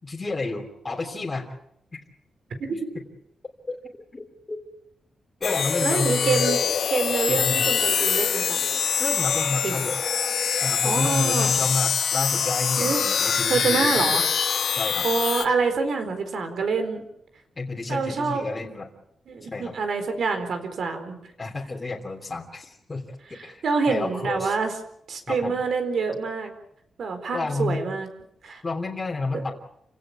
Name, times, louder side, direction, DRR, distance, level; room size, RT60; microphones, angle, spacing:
voice 1, 0.0-1.5 2.7-2.8 3.7-3.8 4.1-4.6 5.4-6.5 7.3-7.7 9.0-10.0 10.6-14.2 14.8-15.1 17.6-18.9 19.4-19.7 21.4-23.0 23.4-24.6 25.3-25.6 27.3-27.8 28.6-29.5, left 3 dB, 20° left, 0 dB, 3.2 m, -30 dB
sound 1, 5.4-15.4, left 7 dB, 65° left, 2.0 m, -24 dB
voice 2, 5.8-8.6 9.6-9.8 10.8-11.5 12.8-13.0 13.3-14.2 15.0-17.0 17.9-18.5 19.3-21.1 23.3-24.7 25.1-26.5 27.0-28.1 28.4-28.6, right 4 dB, 60° right, 7 dB, 4.3 m, -26 dB
29.5 x 17.0 x 8.5 m, 0.77 s
wide cardioid pair, 170°, 0 cm